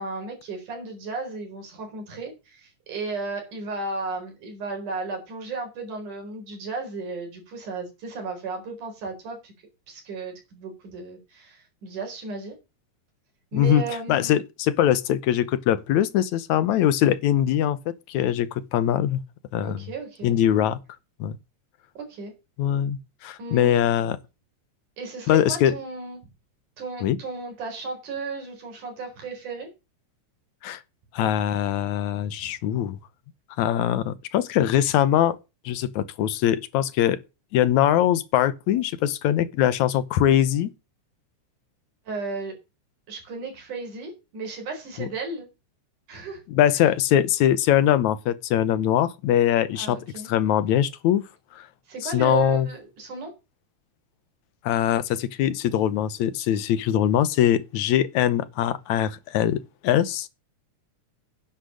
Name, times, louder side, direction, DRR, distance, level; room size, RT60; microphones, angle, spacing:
voice 1, 0.0-9.5 9.9-12.6 13.5-14.4 19.6-20.4 22.0-22.3 23.4-23.8 25.0-26.2 26.8-29.7 32.4-32.5 42.1-42.5 43.1-45.5 46.1-46.4 49.8-50.3 51.9-53.3, right 4 dB, 90° right, 5.9 m, -34 dB
voice 2, 13.5-13.8 14.1-17.8 18.1-19.2 19.5-19.9 20.2-20.8 21.2-21.4 22.6-24.2 25.3-25.8 27.0-27.2 30.6-30.8 31.1-33.0 33.6-35.4 35.7-37.2 37.5-40.7 45.0-45.1 46.5-50.0 50.3-51.2 51.5-51.7 52.0-52.7 54.6-59.6 59.8-60.3, left 11 dB, 75° left, 2.2 m, -22 dB
10.5 x 10.5 x 6.4 m
omnidirectional pair, 3.5 m